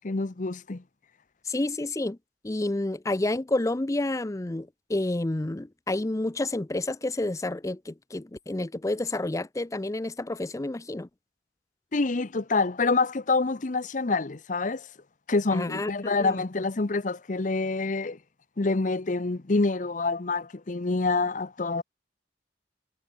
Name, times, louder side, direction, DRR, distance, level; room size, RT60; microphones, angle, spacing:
voice 1, 0.0-0.8 11.9-14.9 15.3-18.2 18.6-21.8, left 3 dB, 45° left, 0.8 m, -27 dB
voice 2, 1.5-2.2 2.4-11.1 15.5-15.9 16.2-16.4, left 2 dB, 20° left, 0.5 m, -29 dB
head